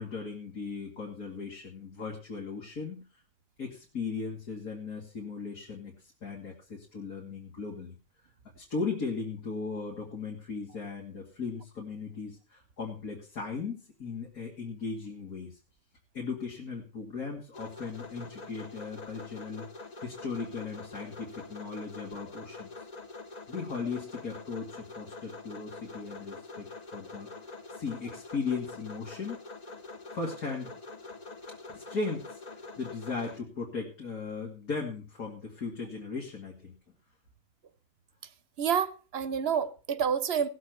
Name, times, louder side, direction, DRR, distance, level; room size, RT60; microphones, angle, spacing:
voice 1, 0.0-3.0 3.6-8.0 8.5-15.6 16.1-22.9 23.5-29.4 30.1-30.7 31.7-36.9, left 4 dB, 85° left, 2.9 m, -37 dB
sound 1, 17.5-33.4, left 3 dB, 30° left, 1.0 m, -45 dB
voice 2, 38.6-40.5, right 7 dB, 50° right, 0.9 m, -28 dB
18.5 x 7.7 x 4.5 m
omnidirectional pair, 1.5 m